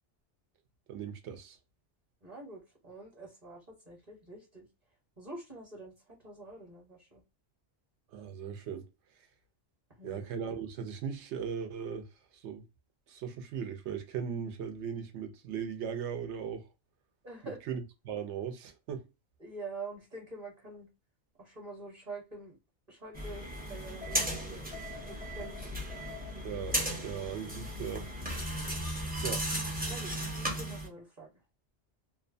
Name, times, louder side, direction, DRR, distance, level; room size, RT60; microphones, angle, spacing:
voice 1, 0.9-1.6 8.1-8.8 10.0-12.1 12.3-12.6 13.1-16.7 17.4-19.1 26.4-28.1 28.3-28.8 29.2-29.4, right 7 dB, 75° right, 0.9 m, -38 dB
voice 2, 2.2-4.7 5.2-7.2 10.0-10.3 17.2-17.6 19.4-20.9 21.4-22.6 22.9-24.7 25.1-25.6 29.9-31.3, right 2 dB, 35° right, 1.0 m, -46 dB
sound 1, 23.1-30.9, equal, 10° right, 0.5 m, -36 dB
2.6 x 2.2 x 2.5 m
omnidirectional pair, 1.2 m